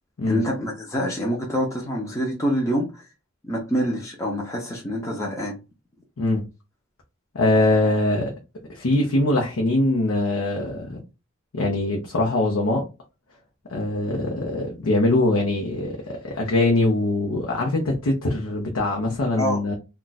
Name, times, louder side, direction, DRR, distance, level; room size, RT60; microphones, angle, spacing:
voice 1, 0.3-3.1 3.4-5.6 19.4-19.6, equal, 15° left, 0.6 m, -26 dB
voice 2, 7.3-8.3 8.7-11.0 11.5-12.8 13.7-19.7, left 2 dB, 80° left, 0.7 m, -22 dB
2.4 x 2.3 x 3.9 m
head